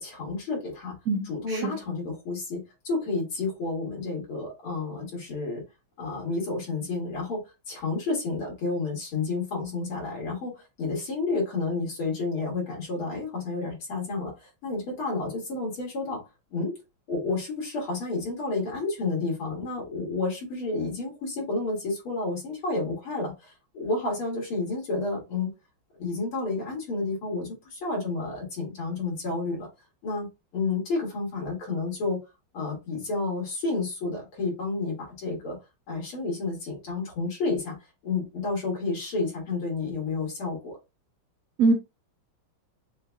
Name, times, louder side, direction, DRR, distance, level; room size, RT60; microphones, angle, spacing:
voice 1, 0.0-0.9 1.3-5.6 6.0-16.2 16.5-16.7 17.1-25.5 25.9-29.7 30.0-32.2 32.5-35.6 35.9-37.8 38.0-40.8, left 3 dB, 90° left, 3.4 m, -30 dB
voice 2, 1.1-1.8 41.6-41.7, right 3 dB, 65° right, 0.9 m, -23 dB
6.5 x 2.4 x 2.7 m
omnidirectional pair, 2.3 m